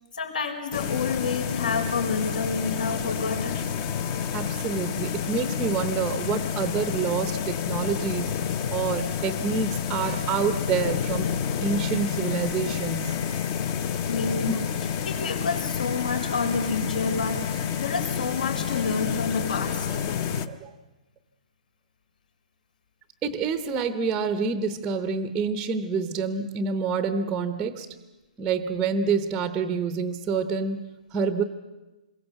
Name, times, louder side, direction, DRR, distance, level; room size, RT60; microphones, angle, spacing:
voice 1, 0.1-3.6 14.1-14.6 15.0-20.0, left 4 dB, 80° left, 4 dB, 5.7 m, -29 dB
sound 1, 0.7-20.5, left 7 dB, 25° left, 0.8 m, -29 dB
voice 2, 4.3-8.3 8.7-11.3 11.6-13.1 14.5-14.6 20.5-20.7 23.2-27.9 28.4-31.4, right 5 dB, 10° right, 9 dB, 0.8 m, -27 dB
26.5 x 22.5 x 8.1 m, 1.1 s
hypercardioid pair, 175°, 4 cm